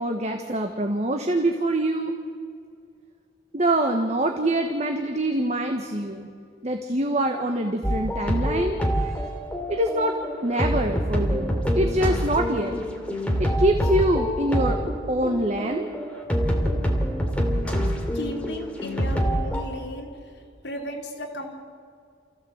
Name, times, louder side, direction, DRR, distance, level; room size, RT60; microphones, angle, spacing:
voice 1, 0.0-2.2 3.5-6.3 6.6-9.3 9.7-10.2 10.4-12.8 13.4-14.8 15.1-15.9, right 1 dB, 35° right, 4 dB, 1.4 m, -25 dB
sound 1, 7.8-19.6, equal, 5° left, 2.9 m, -26 dB
voice 2, 18.1-20.1 20.6-21.6, equal, 65° left, -1 dB, 3.6 m, -34 dB
29.0 x 15.5 x 8.1 m, 2.3 s
head